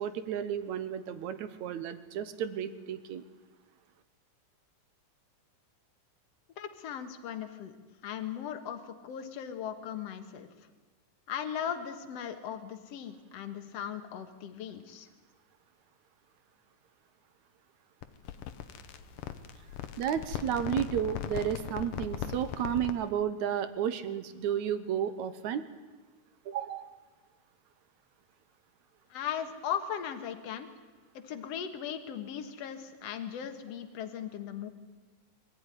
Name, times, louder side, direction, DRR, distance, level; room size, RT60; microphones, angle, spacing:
voice 1, 0.0-3.2 20.0-25.6 26.5-26.9, right 9 dB, 70° right, 12 dB, 2.2 m, -32 dB
voice 2, 6.6-7.8 8.0-10.5 11.3-15.1 29.1-30.7 31.1-34.7, left 9 dB, 55° left, 7 dB, 2.4 m, -38 dB
sound 1, 18.0-23.1, left 10 dB, 85° left, 2.6 m, -39 dB
23.5 x 14.5 x 9.9 m, 1.3 s
omnidirectional pair, 3.7 m